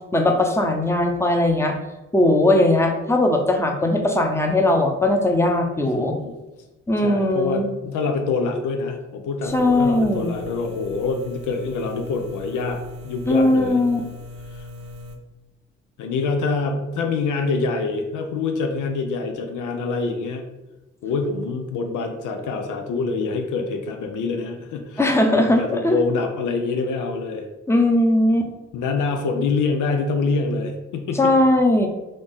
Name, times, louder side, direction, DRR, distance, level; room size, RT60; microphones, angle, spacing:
voice 1, 0.1-1.7 2.1-6.2 6.9-7.7 9.5-10.3 13.3-14.0 25.0-26.0 27.7-28.5 31.1-31.9, left 1 dB, 10° left, 3 dB, 0.7 m, -19 dB
voice 2, 5.8-6.3 7.0-13.8 14.5-14.6 16.0-20.5 21.0-25.0 25.3-27.5 28.7-31.4, left 4 dB, 70° left, 5 dB, 0.6 m, -25 dB
sound 1, 9.4-15.2, left 2 dB, 80° right, 0.6 m, -39 dB
3.9 x 2.4 x 3.6 m, 1.1 s
hypercardioid pair, 45°, 32 cm